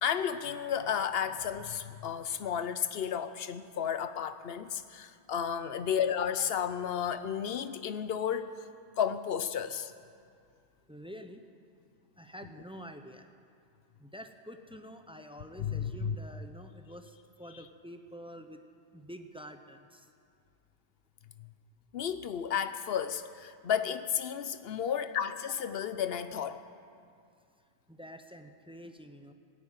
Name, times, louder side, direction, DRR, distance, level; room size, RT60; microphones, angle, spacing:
voice 1, 0.0-8.5 9.0-9.9 15.6-16.2 21.4-21.5 21.9-26.6, left 8 dB, 65° left, 12 dB, 0.9 m, -32 dB
voice 2, 10.9-11.4 12.2-13.3 14.0-18.6 18.9-20.1 27.9-29.3, equal, 5° right, 7 dB, 0.6 m, -48 dB
16.5 x 9.6 x 9.1 m, 2.3 s
omnidirectional pair, 1.1 m